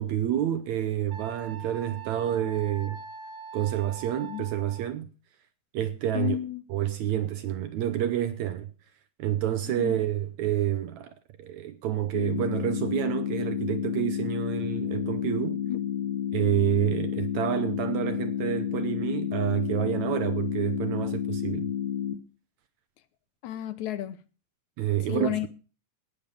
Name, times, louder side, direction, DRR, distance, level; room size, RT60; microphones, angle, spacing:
voice 1, 0.0-3.0 3.5-5.1 5.7-6.4 6.7-8.7 9.2-15.6 16.3-21.7 24.8-25.5, right 11 dB, 75° right, 1.9 m, -28 dB
Wind instrument woodwind instrument, 1.1-4.9, right 6 dB, 90° right, 0.8 m, -42 dB
voice 2, 6.1-6.6 9.8-10.0 15.6-15.8 23.4-24.2 25.1-25.5, left 13 dB, 75° left, 2.0 m, -31 dB
sound 1, 12.1-22.1, left 9 dB, 55° left, 1.7 m, -30 dB
18.5 x 6.8 x 5.1 m
omnidirectional pair, 3.8 m